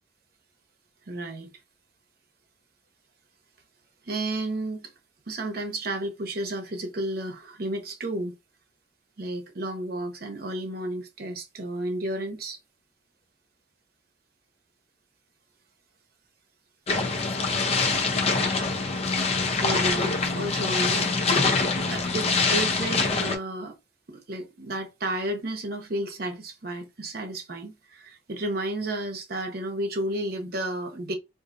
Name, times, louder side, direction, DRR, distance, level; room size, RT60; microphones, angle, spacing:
voice 1, 1.1-1.5 4.0-4.9 5.3-8.3 9.2-12.6 19.6-21.1 21.4-21.5 21.9-23.8 24.1-31.2, right 1 dB, 50° right, 0.8 m, -32 dB
sound 1, 16.9-23.4, left 4 dB, 35° left, 0.6 m, -24 dB
3.8 x 2.6 x 2.5 m
head